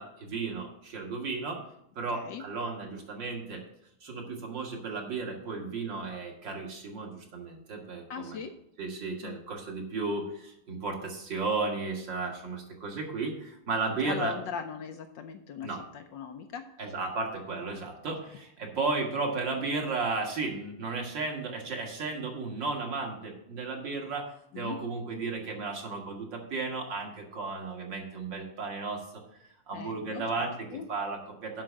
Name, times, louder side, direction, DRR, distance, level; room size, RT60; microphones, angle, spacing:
voice 1, 0.0-1.6 2.0-3.6 4.0-8.4 8.8-14.3 15.6-15.8 16.8-29.0 29.7-30.5 30.9-31.6, right 3 dB, 60° right, 0 dB, 2.4 m, -34 dB
voice 2, 2.1-2.4 8.1-8.5 9.2-9.4 13.9-16.8 24.5-24.8 29.7-30.9, left 7 dB, 70° left, 7 dB, 1.2 m, -39 dB
7.6 x 5.7 x 7.3 m, 0.76 s
omnidirectional pair, 2.3 m